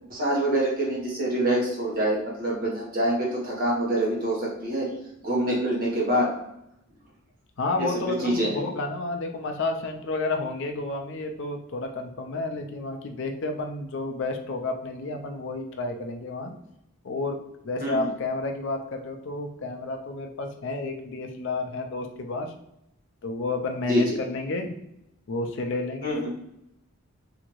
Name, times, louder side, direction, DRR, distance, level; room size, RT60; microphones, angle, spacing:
voice 1, 0.1-4.9 5.2-6.3 7.8-8.6 17.8-18.1 23.9-24.1 26.0-26.3, right 1 dB, 40° right, -4 dB, 1.0 m, -25 dB
voice 2, 7.6-16.5 17.0-17.4 17.6-22.5 23.2-24.8 25.3-26.3, left 2 dB, 55° left, 4 dB, 0.4 m, -31 dB
2.8 x 2.5 x 3.0 m, 0.82 s
head